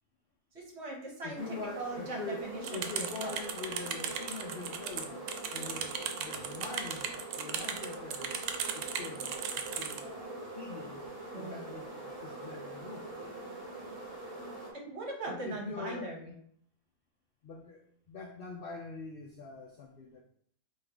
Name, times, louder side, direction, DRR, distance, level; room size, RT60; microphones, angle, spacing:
voice 1, 0.5-3.3 11.3-11.7 14.7-16.3, right 2 dB, 50° right, -1 dB, 1.2 m, -40 dB
voice 2, 1.2-2.4 2.7-8.4 8.7-13.2 15.3-16.1 17.4-20.2, left 4 dB, 65° left, 0 dB, 0.5 m, -44 dB
sound 1, 1.3-14.7, right 2 dB, 35° right, 1.2 m, -44 dB
sound 2, 2.6-10.0, right 7 dB, 85° right, 1.1 m, -37 dB
5.5 x 2.8 x 3.4 m, 0.64 s
omnidirectional pair, 1.6 m